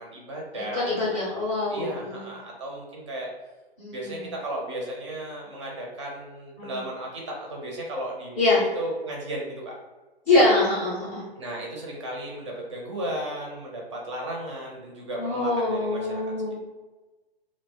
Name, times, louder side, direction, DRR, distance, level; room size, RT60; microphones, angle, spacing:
voice 1, 0.0-3.3 3.9-9.7 11.3-16.2, right 1 dB, 30° right, -2 dB, 0.5 m, -35 dB
voice 2, 0.5-2.2 3.8-4.2 6.6-6.8 8.4-8.6 10.3-11.2 15.2-16.6, left 2 dB, 15° left, -7 dB, 0.5 m, -24 dB
2.4 x 2.1 x 3.3 m, 1.2 s
figure-of-eight pair, 125°, 31 cm